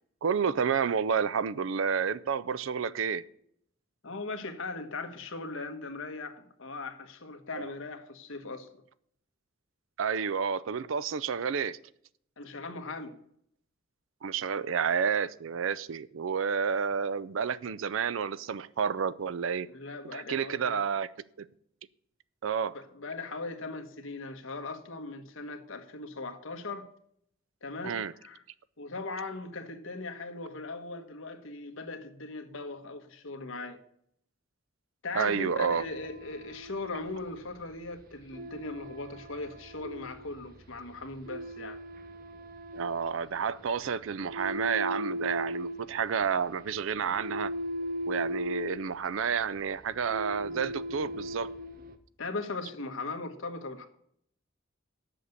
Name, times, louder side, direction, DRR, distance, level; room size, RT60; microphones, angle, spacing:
voice 1, 0.2-3.2 7.5-7.7 10.0-11.8 14.2-19.7 20.1-21.1 21.4-21.5 22.4-22.7 27.8-28.1 35.1-35.8 42.7-47.5 48.1-51.5, right 6 dB, 75° right, 0.5 m, -30 dB
voice 2, 4.0-8.7 12.4-13.2 19.7-20.8 22.7-26.9 27.6-28.4 28.8-33.8 35.0-41.8 52.2-53.9, left 3 dB, 75° left, 1.3 m, -39 dB
sound 1, 35.4-52.0, equal, 45° right, 0.9 m, -39 dB
7.7 x 6.6 x 8.2 m
head